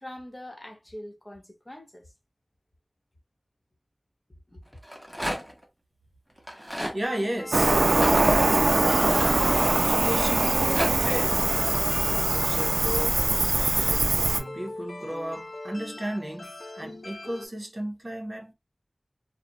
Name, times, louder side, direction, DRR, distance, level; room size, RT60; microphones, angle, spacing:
voice 1, 0.0-2.1 4.5-4.8, left 1 dB, 30° left, 0.9 m, -43 dB
Rattle, 4.7-5.6 6.4-7.0 7.9-9.9 10.4-10.9, equal, 5° right, 0.9 m, -32 dB
voice 2, 6.9-7.8 8.2-9.2 9.8-10.7 11.0-11.5 12.1-18.5, right 1 dB, 45° right, 0.7 m, -34 dB
sound 1, 7.0-17.5, left 2 dB, 65° left, 0.4 m, -42 dB
Cricket, 7.5-14.4, right 2 dB, 90° right, 0.3 m, -22 dB
2.4 x 2.1 x 2.9 m
wide cardioid pair, 50°, 0 cm